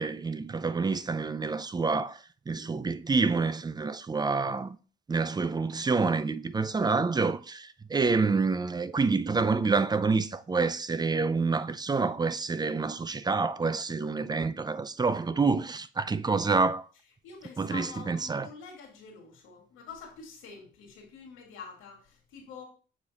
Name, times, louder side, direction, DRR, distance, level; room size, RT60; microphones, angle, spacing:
voice 1, 0.0-2.2 2.5-4.8 5.1-16.9 17.6-18.5, right 4 dB, 20° right, 0.4 m, -27 dB
voice 2, 17.2-22.6, left 5 dB, 90° left, 2.2 m, -46 dB
7.3 x 3.3 x 4.1 m
cardioid pair, 90°, 20 cm